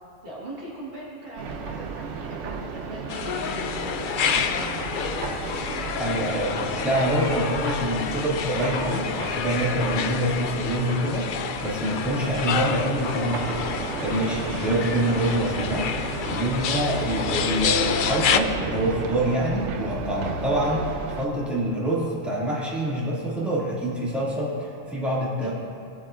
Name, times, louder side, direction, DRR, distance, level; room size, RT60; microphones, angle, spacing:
voice 1, 0.2-4.8 25.4-25.5, right 1 dB, 50° right, -6 dB, 1.8 m, -39 dB
sound 1, 1.4-21.3, right 4 dB, 85° right, 1.0 m, -34 dB
sound 2, 3.1-18.4, left 7 dB, 60° left, 0.5 m, -29 dB
voice 2, 6.0-13.6 14.0-15.9 16.3-25.5, right 1 dB, ahead, -8 dB, 2.3 m, -26 dB
18.0 x 8.2 x 2.5 m, 2.5 s
omnidirectional pair, 1.2 m